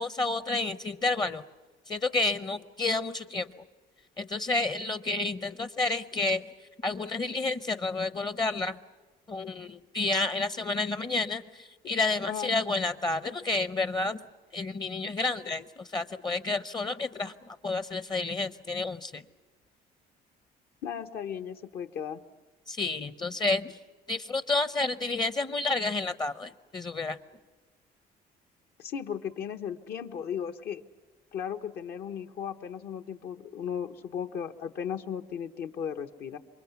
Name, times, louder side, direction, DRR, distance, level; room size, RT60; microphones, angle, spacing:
voice 1, 0.0-1.4 1.9-3.5 4.2-6.5 6.8-8.8 9.3-14.2 14.5-19.2 22.7-23.7 24.1-27.2, left 3 dB, 25° left, 13 dB, 0.7 m, -30 dB
voice 2, 20.8-22.2 28.8-30.8 31.3-36.4, left 8 dB, 70° left, 6 dB, 1.1 m, -36 dB
27.5 x 23.5 x 7.0 m, 1.3 s
cardioid pair, 110°, 17 cm